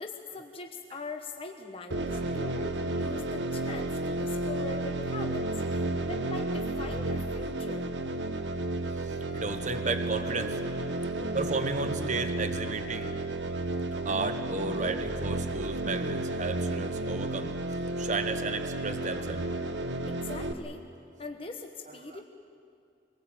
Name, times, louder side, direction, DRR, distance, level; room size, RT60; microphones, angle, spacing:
voice 1, 0.0-7.9 20.1-20.8 21.2-22.2, left 3 dB, 30° left, 4 dB, 1.1 m, -41 dB
sound 1, 1.9-20.5, right 2 dB, 70° right, 1.1 m, -32 dB
voice 2, 2.1-2.6 3.3-3.4 5.7-6.1 9.0-11.0 11.3-13.1 13.9-17.5 18.0-19.6 22.1-22.2, right 3 dB, 40° right, 8 dB, 1.3 m, -34 dB
23.5 x 18.5 x 8.8 m, 2.4 s
head